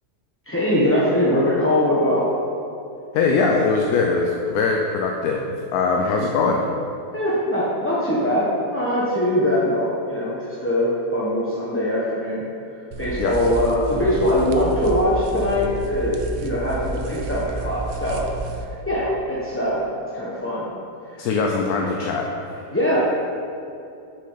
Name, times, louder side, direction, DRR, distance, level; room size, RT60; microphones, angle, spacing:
voice 1, 0.5-2.3 7.1-12.4 13.0-18.2 18.9-19.8 20.1-20.7 21.1-21.3 22.7-23.0, left 1 dB, 10° left, -8 dB, 0.7 m, -22 dB
voice 2, 3.1-6.7 13.2-13.3 21.2-22.3, left 4 dB, 65° left, 1 dB, 1.1 m, -21 dB
sound 1, 12.9-18.6, right 3 dB, 75° right, 0.6 m, -30 dB
6.7 x 6.6 x 5.6 m, 2.6 s
omnidirectional pair, 1.9 m